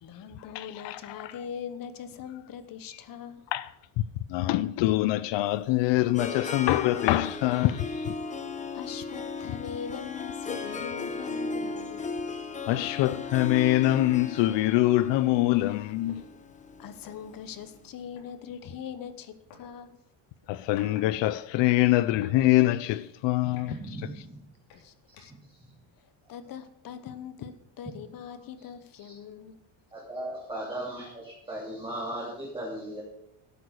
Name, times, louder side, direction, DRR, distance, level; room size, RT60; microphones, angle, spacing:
voice 1, 0.0-3.4 8.4-12.1 16.8-20.0 23.5-23.6 24.7-25.3 26.3-29.6, left 7 dB, 45° left, 1.1 m, -41 dB
voice 2, 0.5-1.3 3.5-3.7 4.0-4.1 4.3-8.1 12.7-16.2 20.5-23.7, left 16 dB, 65° left, 0.6 m, -24 dB
Harp, 5.5-17.6, left 3 dB, 15° left, 0.8 m, -36 dB
sound 1, 11.1-11.3 11.7-11.9 12.3-12.6 13.5-13.6 13.9-15.3 16.1-16.2 17.0-17.2 18.2-18.3 19.5-19.7 20.4-21.1 21.4-22.4 22.8-23.0 23.5-24.3 24.7-25.5, left 6 dB, 90° left, 4.0 m, -53 dB
voice 3, 23.4-24.4 25.3-25.7 29.0-29.1 29.9-33.0, right 1 dB, 10° right, 3.0 m, -37 dB
12.0 x 8.4 x 6.5 m
cardioid pair, 155°, 48 cm